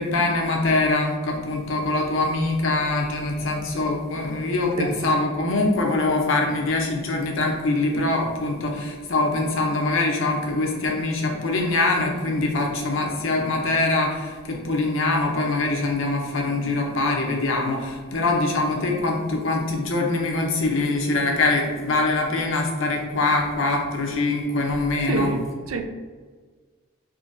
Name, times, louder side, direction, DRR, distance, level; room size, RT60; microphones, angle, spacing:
voice 1, 0.0-25.3, left 2 dB, 65° left, 1 dB, 0.6 m, -23 dB
voice 2, 25.0-25.8, right 4 dB, 75° right, 5 dB, 0.4 m, -27 dB
3.7 x 2.8 x 2.6 m, 1.5 s
head